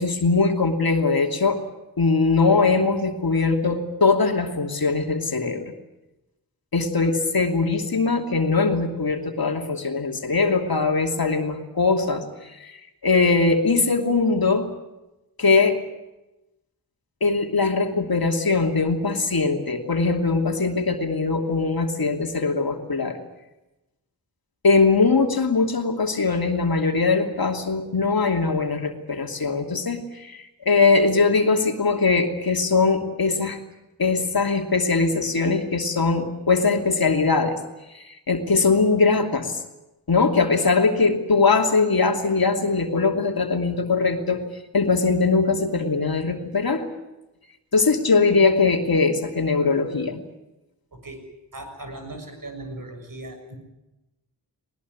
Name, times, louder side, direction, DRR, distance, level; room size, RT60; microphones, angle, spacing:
voice 1, 0.0-1.6 2.0-5.7 6.7-12.8 13.0-14.7 15.4-15.8 17.2-23.2 24.6-33.6 34.0-37.6 37.9-39.6 40.1-44.4 44.7-46.8 47.7-50.2, left 4 dB, 55° left, 4 dB, 2.9 m, -21 dB
voice 2, 51.5-53.6, right 2 dB, 50° right, 6 dB, 6.8 m, -38 dB
20.5 x 20.0 x 9.6 m, 0.98 s
cardioid pair, 45°, 43 cm